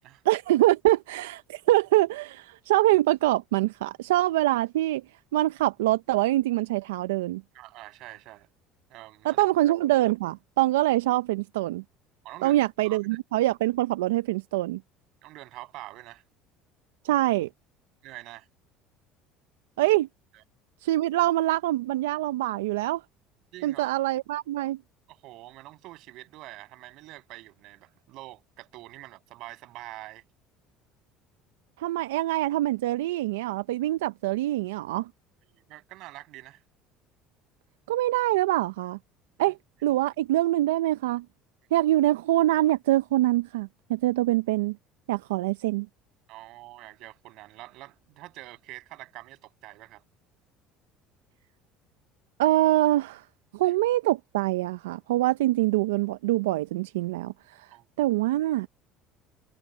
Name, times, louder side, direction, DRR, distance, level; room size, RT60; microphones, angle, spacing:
voice 1, 0.2-5.0 5.3-7.4 9.2-11.8 12.4-14.8 17.0-17.5 19.8-20.1 20.8-23.0 23.6-24.8 31.8-35.1 37.9-39.0 39.4-41.3 41.7-44.8 45.1-45.9 52.4-53.2 53.5-57.7 58.0-58.7, right 16 dB, 90° right, 0.5 m, -24 dB
voice 2, 7.5-8.5 8.9-9.4 12.2-13.2 15.2-16.2 18.0-18.5 20.3-20.4 23.5-24.0 25.1-30.2 35.5-36.6 46.3-50.0 53.6-53.7 57.7-57.9, right 18 dB, 65° right, 7.9 m, -45 dB
supercardioid pair, 85°, 0 cm